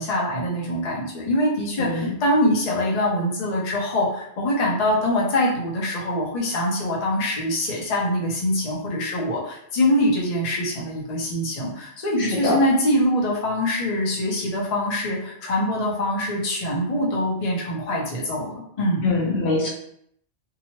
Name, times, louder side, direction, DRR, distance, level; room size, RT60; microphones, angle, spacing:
voice 1, 0.0-19.0, left 1 dB, 40° left, -4 dB, 0.7 m, -24 dB
voice 2, 1.8-2.2 12.2-12.6 19.0-19.7, left 3 dB, 70° left, -2 dB, 0.9 m, -23 dB
2.9 x 2.3 x 2.9 m, 0.70 s
omnidirectional pair, 1.1 m